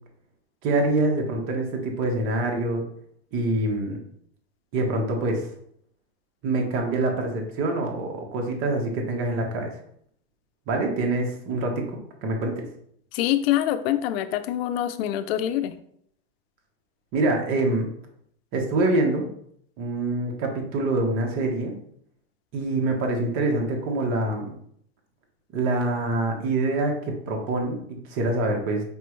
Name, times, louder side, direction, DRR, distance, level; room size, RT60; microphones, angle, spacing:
voice 1, 0.6-2.8 3.3-4.0 4.7-5.5 6.4-9.7 10.7-12.6 17.1-17.9 18.5-19.3 19.8-21.7 22.5-24.5 25.5-27.8 28.1-28.8, right 2 dB, 40° right, 1 dB, 1.2 m, -25 dB
voice 2, 13.1-15.8, left 12 dB, 65° left, 11 dB, 0.5 m, -25 dB
5.4 x 3.0 x 3.1 m, 0.67 s
supercardioid pair, 140°, 33 cm